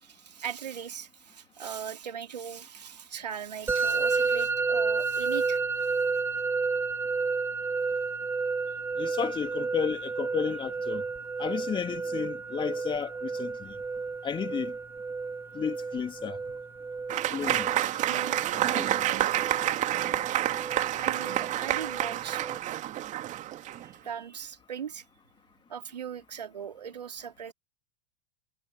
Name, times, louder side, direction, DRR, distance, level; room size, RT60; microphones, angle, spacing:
voice 1, 0.0-5.9 18.1-19.4 19.9-20.2 20.9-22.4 23.8-25.0 25.7-27.5, right 8 dB, 75° right, 3.1 m, -40 dB
Musical instrument, 3.7-22.6, right 4 dB, 10° right, 1.4 m, -31 dB
voice 2, 9.0-11.0 11.4-13.8 14.2-14.8 15.5-16.4 17.3-17.7 18.5-19.1, left 7 dB, 25° left, 3.3 m, -32 dB
Applause / Crowd, 17.1-23.9, right 13 dB, 35° right, 2.5 m, -29 dB
figure-of-eight pair, 85°, 21 cm